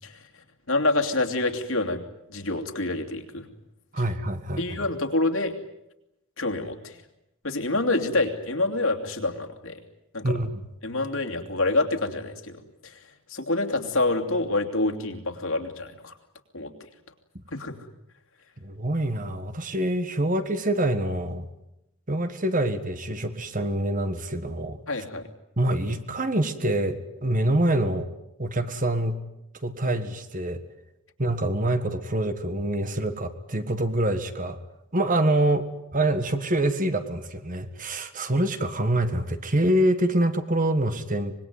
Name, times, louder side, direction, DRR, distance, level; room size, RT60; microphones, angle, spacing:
voice 1, 0.7-2.0 2.3-3.5 3.9-4.0 4.6-5.5 6.4-7.0 7.4-9.8 10.1-10.3 10.8-13.0 13.3-16.1 16.5-16.7 17.5-17.8 24.9-25.3, left 2 dB, 65° left, 4 dB, 2.8 m, -27 dB
voice 2, 3.9-4.8 10.2-10.6 18.6-21.5 22.1-24.8 25.6-28.1 28.4-29.2 29.6-30.6 31.2-34.6 34.9-35.7 35.9-41.4, right 1 dB, 35° right, 10 dB, 1.7 m, -25 dB
25.5 x 21.0 x 9.5 m, 0.86 s
head